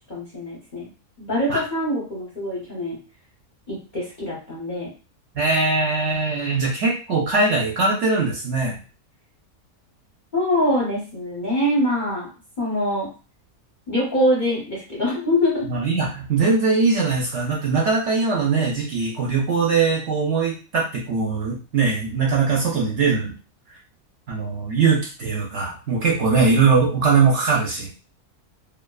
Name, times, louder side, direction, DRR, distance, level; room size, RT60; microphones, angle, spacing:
voice 1, 0.1-0.9 1.2-3.0 3.7-4.9 10.3-12.3 12.6-13.1 13.9-15.7, left 1 dB, 45° left, -5 dB, 0.7 m, -24 dB
voice 2, 5.3-8.7 15.6-23.3 24.3-27.9, right 4 dB, 60° right, -3 dB, 0.8 m, -21 dB
2.6 x 2.3 x 2.2 m, 0.35 s
omnidirectional pair, 1.6 m